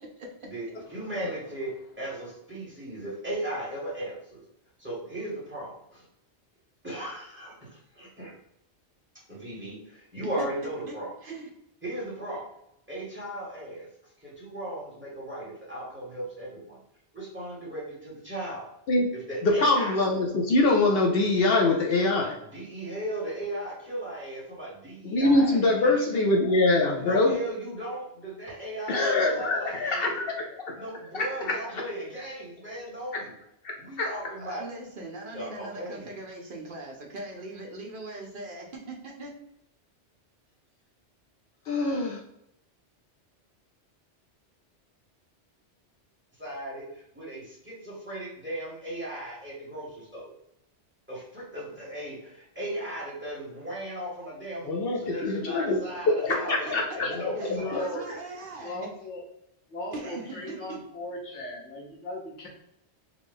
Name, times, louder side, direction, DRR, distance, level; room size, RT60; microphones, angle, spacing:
voice 1, 0.5-4.4 4.8-6.0 6.8-8.3 9.3-11.1 11.8-12.5 12.9-13.9 14.2-16.8 17.1-18.7 19.3-20.0 22.5-26.2 26.9-30.2 30.8-33.3 33.8-34.6 35.3-36.0 46.4-50.3 51.1-58.3, right 1 dB, 10° right, -6 dB, 1.4 m, -37 dB
voice 2, 10.9-11.5 34.3-39.3 56.7-56.8 57.1-58.9 59.9-60.8, right 2 dB, 55° right, 0 dB, 0.7 m, -40 dB
voice 3, 19.4-22.4 25.0-27.4 28.9-30.9 31.1-31.8 33.1-33.3 33.6-34.1 41.7-42.2 54.6-57.5, left 2 dB, 65° left, 1 dB, 0.7 m, -24 dB
voice 4, 55.1-55.4 55.9-56.0 57.0-58.1 58.6-59.2 59.7-62.5, left 2 dB, 85° left, -1 dB, 1.3 m, -38 dB
3.7 x 2.3 x 3.5 m, 0.80 s
omnidirectional pair, 1.2 m